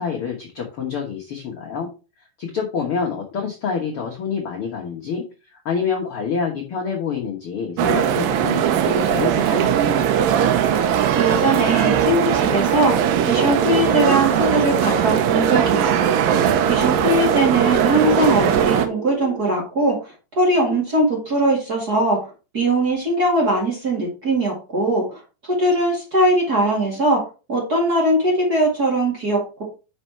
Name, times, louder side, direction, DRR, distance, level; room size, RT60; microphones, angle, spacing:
voice 1, 0.0-1.9 2.4-5.2 5.6-10.1, left 6 dB, 80° left, -1 dB, 1.2 m, -27 dB
sound 1, 7.8-18.9, right 9 dB, 80° right, 2.2 m, -19 dB
voice 2, 11.1-16.1 16.7-20.0 20.4-22.3 22.5-25.2 25.5-27.2 27.5-29.6, right 1 dB, 35° right, -2 dB, 1.7 m, -20 dB
sound 2, 12.5-19.4, right 3 dB, 15° right, 2.5 m, -31 dB
5.9 x 5.6 x 4.4 m, 0.31 s
omnidirectional pair, 4.5 m